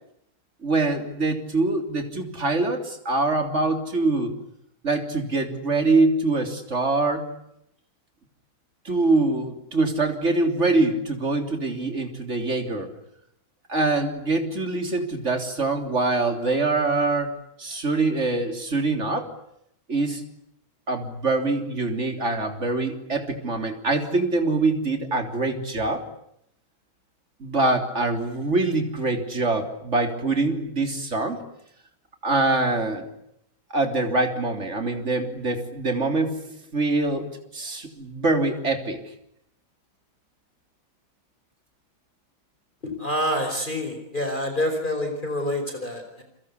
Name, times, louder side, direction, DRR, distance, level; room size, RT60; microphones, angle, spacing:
voice 1, 0.6-4.3 4.8-7.3 8.9-12.9 13.7-19.3 19.9-20.2 20.9-26.1 27.4-31.4 32.2-33.1 33.7-37.3 37.5-39.0, right 3 dB, 35° right, 6 dB, 3.8 m, -24 dB
voice 2, 42.8-46.2, left 1 dB, 25° left, 5 dB, 5.2 m, -27 dB
30.0 x 24.0 x 8.4 m, 0.77 s
omnidirectional pair, 2.2 m